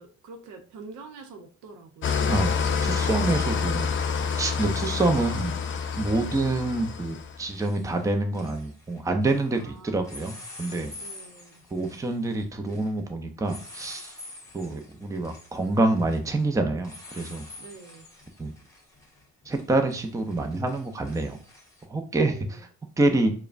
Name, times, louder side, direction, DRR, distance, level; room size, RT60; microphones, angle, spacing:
voice 1, 0.0-2.2 5.1-5.6 6.2-6.5 9.5-10.1 11.0-11.6 17.6-18.0 22.2-22.6, right 4 dB, 75° right, 5 dB, 0.8 m, -45 dB
Engine starting / Idling, 2.0-7.4, left 6 dB, 40° left, 0.5 m, -27 dB
voice 2, 2.2-2.5 2.8-3.9 4.4-5.5 6.0-10.9 11.7-14.1 14.5-17.5 18.4-18.5 19.5-21.4 21.9-22.6 23.0-23.3, right 2 dB, 10° right, 5 dB, 0.5 m, -26 dB
sound 1, 6.6-6.9 7.2-9.6 10.0-21.8, left 2 dB, 10° left, 1.2 m, -47 dB
4.8 x 2.2 x 2.5 m, 0.43 s
cardioid pair, 90°, 30 cm